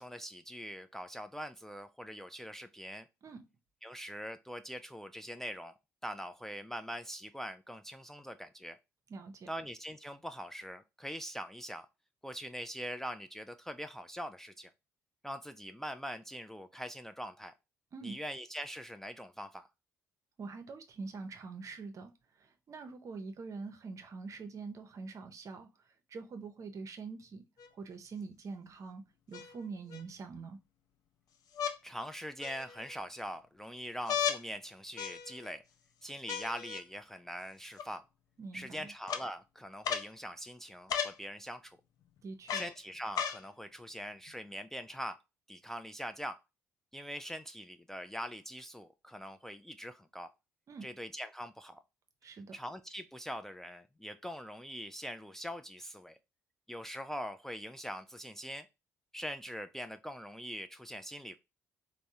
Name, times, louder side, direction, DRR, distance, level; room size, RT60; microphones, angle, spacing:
voice 1, 0.0-3.1 3.8-5.7 6.0-8.8 9.5-11.9 12.2-14.7 15.2-17.5 18.0-19.7 31.8-35.6 36.0-38.0 38.5-41.8 42.5-45.2 45.5-46.4 46.9-50.3 50.8-51.8 52.5-56.2 56.7-58.7 59.1-61.4, equal, 5° left, 0.3 m, -43 dB
voice 2, 9.1-9.5 17.9-18.2 20.4-27.4 27.7-30.6 38.4-38.9 42.2-42.6 50.7-50.9 52.2-52.5, right 4 dB, 50° right, 0.6 m, -45 dB
sound 1, 27.6-27.7 29.3-30.0 31.5-31.8 32.4-32.9 34.1-34.4 35.0-35.5 36.3-36.8 37.8-37.9 39.1-39.2 39.8-40.1 40.9-41.2 42.5-42.7 43.1-43.4 44.3-44.4, left 8 dB, 60° left, 0.5 m, -35 dB
3.4 x 2.0 x 2.7 m
supercardioid pair, 65°, 7 cm